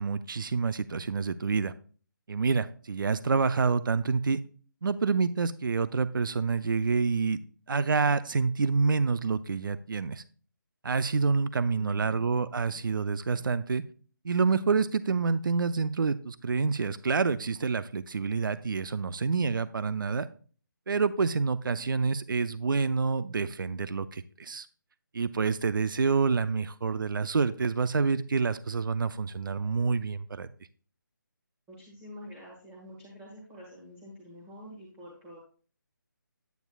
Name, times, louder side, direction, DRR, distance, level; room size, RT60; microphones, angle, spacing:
voice 1, 0.0-1.7 2.3-4.4 4.8-7.4 7.7-10.2 10.8-13.8 14.2-20.3 20.9-24.7 25.1-30.5, right 4 dB, 70° right, 14 dB, 0.5 m, -27 dB
voice 2, 11.8-12.3 31.7-35.4, equal, 10° right, -3 dB, 1.5 m, -47 dB
9.4 x 9.2 x 2.3 m, 0.42 s
figure-of-eight pair, 165°, 11 cm